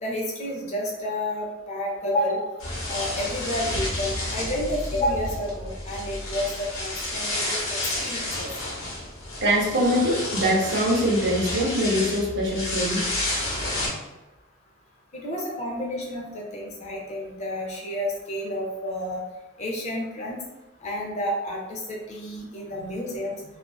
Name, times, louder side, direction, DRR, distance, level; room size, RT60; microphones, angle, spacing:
voice 1, 0.0-2.5 2.9-8.5 15.1-19.2 19.6-20.4 20.8-23.4, left 1 dB, 35° left, -1 dB, 0.5 m, -30 dB
sound 1, 2.6-13.9, left 1 dB, 85° left, 0.7 m, -31 dB
voice 2, 9.4-13.1 15.5-15.7 22.7-22.9, equal, 60° right, -2 dB, 0.6 m, -23 dB
2.4 x 2.2 x 2.2 m, 1.0 s
head